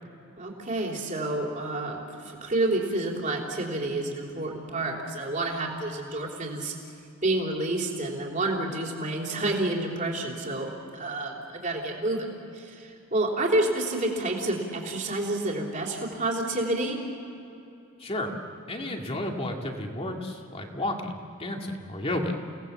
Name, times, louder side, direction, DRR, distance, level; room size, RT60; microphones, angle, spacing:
voice 1, 0.4-6.7 7.2-12.3 12.5-17.0, right 2 dB, 35° right, 0 dB, 3.7 m, -29 dB
voice 2, 18.0-18.3 18.7-21.1 21.4-22.4, left 1 dB, 25° left, 2 dB, 2.4 m, -32 dB
30.0 x 18.5 x 7.3 m, 2.8 s
head